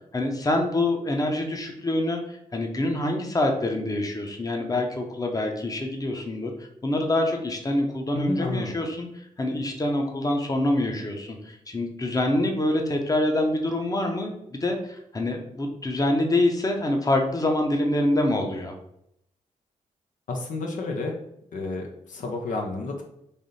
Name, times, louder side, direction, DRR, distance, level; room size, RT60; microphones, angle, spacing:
voice 1, 0.1-18.8, left 1 dB, 25° left, 3 dB, 0.8 m, -26 dB
voice 2, 8.2-8.7 20.3-21.1 21.5-23.0, left 3 dB, 70° left, 1 dB, 0.7 m, -30 dB
3.4 x 2.7 x 4.0 m, 0.77 s
cardioid pair, 55°, 14 cm